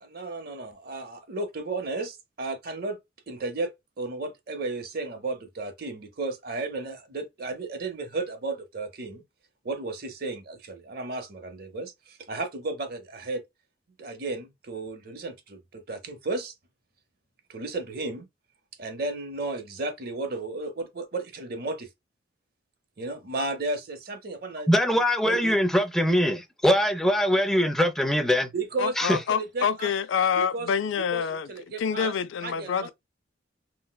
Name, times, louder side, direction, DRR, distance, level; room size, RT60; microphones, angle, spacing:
voice 1, 0.0-3.0 3.3-3.7 4.0-9.2 9.6-13.4 14.0-16.5 17.5-18.3 18.8-21.9 23.0-24.7 25.2-25.6 28.5-29.9 30.4-30.7 31.1-31.2 31.5-32.1 32.4-32.9, right 3 dB, 55° right, 0.7 m, -33 dB
voice 2, 24.7-28.5 29.0-29.2, equal, ahead, 0.3 m, -22 dB
voice 3, 28.8-31.5 31.8-32.9, left 7 dB, 80° left, 0.4 m, -27 dB
3.8 x 2.1 x 2.2 m
head